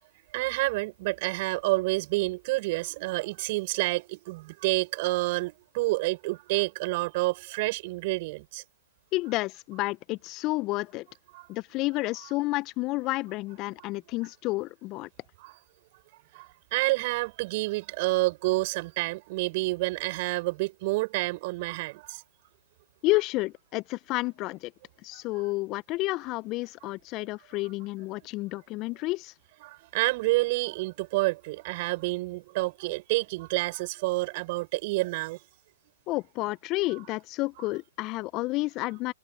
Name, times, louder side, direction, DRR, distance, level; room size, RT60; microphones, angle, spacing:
voice 1, 0.3-8.6 11.3-11.5 15.4-15.5 16.3-22.2 29.6-35.4, right 22 dB, 45° right, 5.8 m, -29 dB
voice 2, 9.1-11.1 11.5-15.1 23.0-24.7 25.0-29.3 36.1-39.1, left 21 dB, 35° left, 0.9 m, -30 dB
figure-of-eight pair, 115°, 0 cm